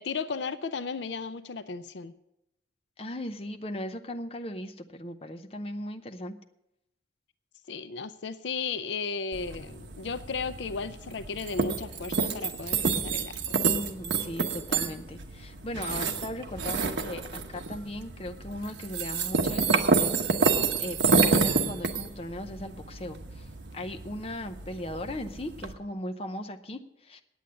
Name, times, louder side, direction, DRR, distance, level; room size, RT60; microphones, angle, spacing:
voice 1, 0.0-2.1 7.7-13.6, left 4 dB, 75° left, 13 dB, 0.5 m, -35 dB
voice 2, 3.0-6.4 13.6-20.2 20.8-23.5 23.7-27.2, left 1 dB, 30° left, 7 dB, 0.7 m, -38 dB
sound 1, 9.3-25.7, right 4 dB, 80° right, 1.0 m, -29 dB
9.1 x 8.6 x 8.4 m, 0.85 s
head